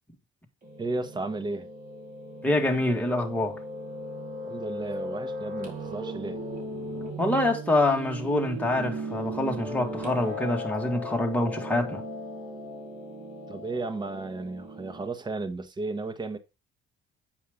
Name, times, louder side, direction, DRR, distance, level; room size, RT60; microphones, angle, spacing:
Piano, 0.6-15.1, equal, 40° right, 4.1 m, -37 dB
voice 1, 0.8-1.7 4.4-6.4 13.5-16.4, right 3 dB, 20° right, 1.1 m, -34 dB
voice 2, 2.4-3.6 7.2-12.0, left 1 dB, 5° left, 1.8 m, -26 dB
9.1 x 5.6 x 5.0 m
cardioid pair, 145°, 21 cm